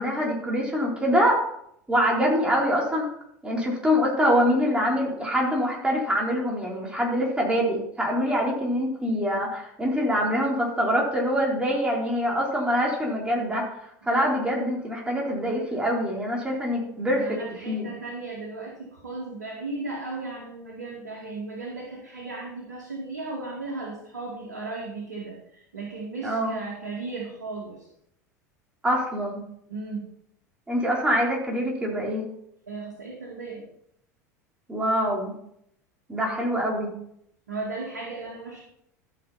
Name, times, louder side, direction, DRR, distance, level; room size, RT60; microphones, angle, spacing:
voice 1, 0.0-1.4 1.9-3.1 3.4-13.7 14.1-17.3 17.7-17.9 26.2-26.6 28.8-29.4 30.7-32.3 34.7-35.3 36.1-36.9, equal, 10° right, -2 dB, 4.0 m, -24 dB
voice 2, 17.2-27.9 29.7-30.1 32.7-33.6 37.5-38.6, right 3 dB, 80° right, -2 dB, 2.3 m, -36 dB
14.0 x 6.7 x 4.3 m, 0.73 s
figure-of-eight pair, 75°, 9 cm